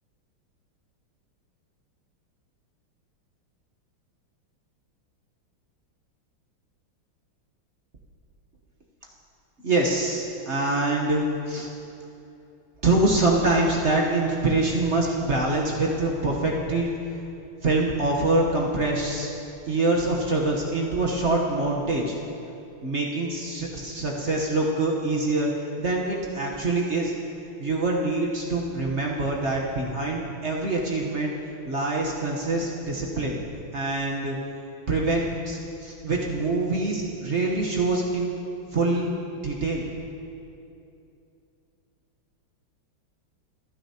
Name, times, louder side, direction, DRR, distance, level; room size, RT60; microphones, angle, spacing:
voice 1, 9.6-11.7 12.8-17.0 17.6-19.3 19.7-22.2 22.8-25.5 25.8-27.1 27.6-31.3 31.6-33.4 33.7-34.4 34.9-38.3 38.7-39.1 39.4-39.8, right 2 dB, 40° right, -2 dB, 1.1 m, -25 dB
26.5 x 9.7 x 2.9 m, 2.7 s
omnidirectional pair, 2.3 m